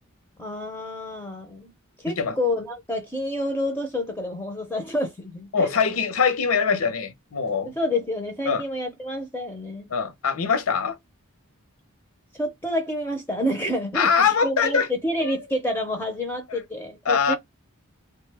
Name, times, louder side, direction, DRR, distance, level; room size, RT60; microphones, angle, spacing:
voice 1, 0.4-1.7 2.0-5.7 7.8-9.9 12.3-17.4, left 1 dB, 10° left, 0.6 m, -28 dB
voice 2, 5.5-7.7 8.5-8.6 9.9-11.0 13.9-14.9 15.2-15.4 16.5-16.6 17.1-17.4, left 6 dB, 70° left, 0.6 m, -23 dB
3.5 x 2.2 x 3.3 m
head